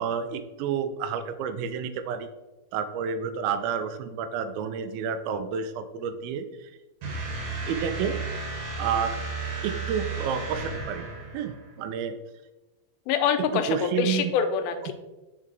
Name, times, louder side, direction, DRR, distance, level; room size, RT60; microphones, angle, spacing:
voice 1, 0.0-2.3 2.7-6.7 7.7-8.2 8.8-9.2 9.6-11.1 11.3-12.1 13.5-14.3 14.9-15.0, right 7 dB, 90° right, 10 dB, 2.4 m, -30 dB
sound 1, 7.0-11.7, right 4 dB, 65° right, 2.5 m, -33 dB
voice 2, 13.1-14.9, left 7 dB, 85° left, 8 dB, 2.4 m, -25 dB
5.4 x 4.6 x 3.8 m, 1.1 s
omnidirectional pair, 4.2 m